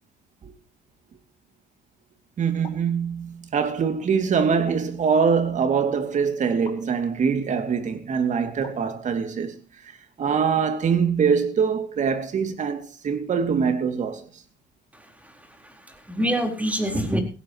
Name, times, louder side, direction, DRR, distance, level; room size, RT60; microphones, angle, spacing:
voice 1, 2.4-9.5 9.8-14.4, right 6 dB, 45° right, 2.6 m, -23 dB
sound 1, 2.6-2.9 4.7-5.0 6.6-6.9 8.6-8.9, left 4 dB, 30° left, 7.9 m, -44 dB
voice 2, 14.9-15.3 15.6-17.2, equal, 10° right, 4.2 m, -26 dB
17.0 x 16.5 x 3.1 m
cardioid pair, 110°, 17 cm